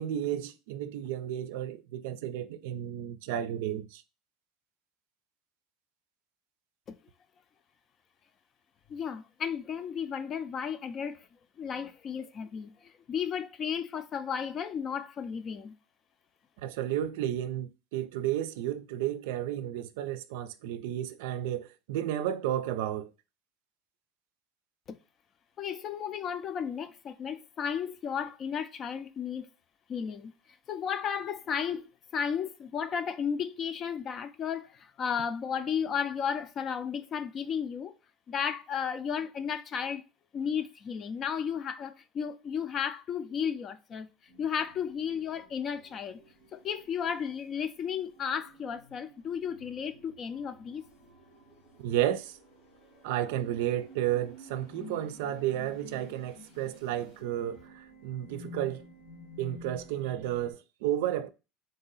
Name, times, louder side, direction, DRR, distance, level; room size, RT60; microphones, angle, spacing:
voice 1, 0.0-4.0 16.6-23.1 51.8-52.4 53.0-58.8 59.4-61.3, right 12 dB, 85° right, 0.4 m, -32 dB
voice 2, 8.9-11.2 11.6-15.7 24.9-25.0 25.6-29.5 29.9-30.3 30.7-38.0 38.3-40.0 40.3-44.1 44.4-46.2 46.5-50.8, left 7 dB, 35° left, 0.4 m, -34 dB
sound 1, 44.3-60.5, left 1 dB, 85° left, 1.9 m, -52 dB
3.9 x 2.7 x 3.9 m
supercardioid pair, 140°, 0 cm